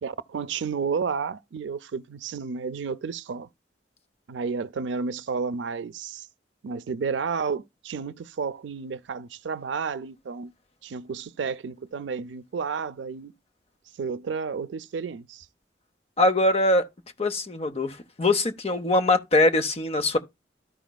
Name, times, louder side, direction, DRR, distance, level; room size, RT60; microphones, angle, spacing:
voice 1, 0.0-3.5 4.3-6.3 6.6-10.5 10.8-13.3 14.0-15.5, right 5 dB, 85° right, 0.4 m, -31 dB
voice 2, 16.2-16.9 17.2-20.2, left 2 dB, 35° left, 0.7 m, -22 dB
13.5 x 5.1 x 2.2 m
head